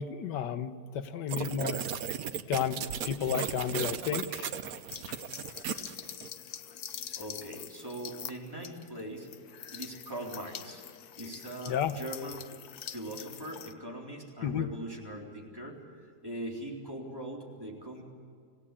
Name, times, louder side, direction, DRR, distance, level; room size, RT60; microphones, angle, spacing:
voice 1, 0.0-1.8 2.5-4.5 5.1-5.2 11.7-12.0 14.4-14.7, left 8 dB, 90° left, 11 dB, 1.6 m, -32 dB
sound 1, 1.3-6.3, right 8 dB, 60° right, 1.3 m, -36 dB
sound 2, 4.9-13.7, left 9 dB, 65° left, 1.3 m, -45 dB
voice 2, 7.1-9.3 9.7-10.8 11.2-12.5 12.9-15.8 16.2-18.0, right 1 dB, 15° right, -2 dB, 3.8 m, -41 dB
26.5 x 17.0 x 8.6 m, 2.2 s
omnidirectional pair, 1.8 m